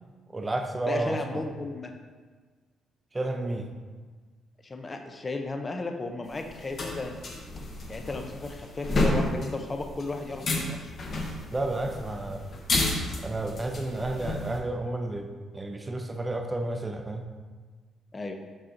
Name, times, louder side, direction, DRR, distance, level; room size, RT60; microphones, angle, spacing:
voice 1, 0.3-1.4 3.1-3.7 11.5-12.5 13.2-17.3, right 2 dB, 20° right, 5 dB, 0.6 m, -31 dB
voice 2, 0.9-1.9 4.6-7.2 7.9-10.9 18.1-18.3, left 3 dB, 30° left, 5 dB, 0.6 m, -34 dB
sound 1, 6.3-14.6, left 2 dB, 50° left, 1.1 m, -31 dB
6.1 x 5.7 x 2.7 m, 1.5 s
cardioid pair, 90°, 0 cm